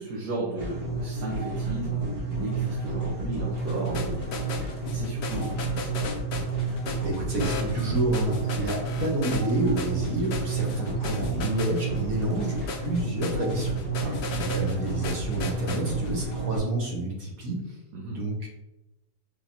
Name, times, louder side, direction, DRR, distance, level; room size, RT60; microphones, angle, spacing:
voice 1, 0.0-6.0 14.0-14.3 17.9-18.2, right 2 dB, 75° right, -4 dB, 1.5 m, -35 dB
sound 1, 0.6-16.6, right 3 dB, 35° right, 1.6 m, -30 dB
sound 2, 3.6-16.3, left 4 dB, 70° left, 0.6 m, -36 dB
voice 2, 7.0-17.8 18.1-18.5, right 2 dB, 60° right, -2 dB, 1.6 m, -29 dB
5.4 x 3.6 x 2.7 m, 0.97 s
omnidirectional pair, 1.8 m